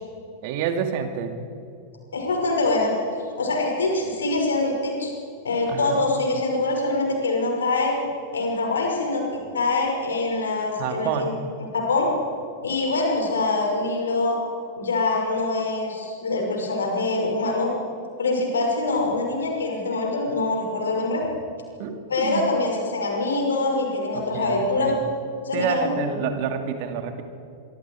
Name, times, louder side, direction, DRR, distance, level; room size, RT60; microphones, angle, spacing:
voice 1, 0.4-1.3 5.7-6.0 10.8-11.3 21.8-22.4 24.1-25.0 25.5-27.2, right 7 dB, 50° right, 6 dB, 2.5 m, -28 dB
voice 2, 2.1-2.9 3.4-5.1 5.4-7.9 8.3-11.3 11.6-12.1 12.6-14.4 14.8-17.7 18.2-21.2 22.1-25.0 25.4-25.9, left 2 dB, 70° left, 1 dB, 6.0 m, -24 dB
25.0 x 24.5 x 4.8 m, 2.5 s
figure-of-eight pair, 90°, 0 cm